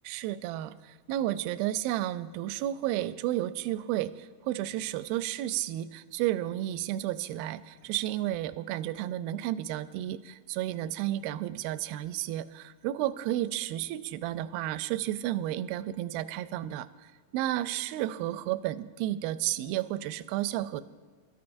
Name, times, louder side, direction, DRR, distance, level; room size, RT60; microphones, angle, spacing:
voice 1, 0.1-20.8, right 13 dB, 80° right, 13 dB, 2.3 m, -32 dB
29.0 x 13.5 x 2.6 m, 1.4 s
omnidirectional pair, 4.5 m